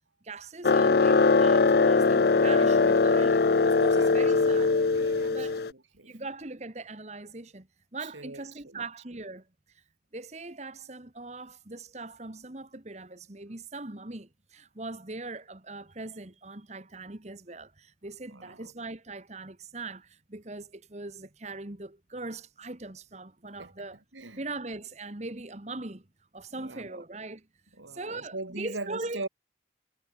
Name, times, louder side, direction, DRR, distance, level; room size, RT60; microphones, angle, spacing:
voice 1, 0.2-4.9 5.3-5.6 6.0-7.7 7.9-9.8 10.1-24.0 24.4-26.0 26.3-27.4 27.9-29.2, right 2 dB, 35° right, 1.5 m, -40 dB
sound 1, 0.6-5.7, left 4 dB, 55° left, 0.5 m, -21 dB
voice 2, 4.4-6.2 8.0-8.8 18.3-18.7 23.6-23.7 24.1-24.4 26.5-27.0 27.8-29.3, right 2 dB, 90° right, 3.8 m, -42 dB
head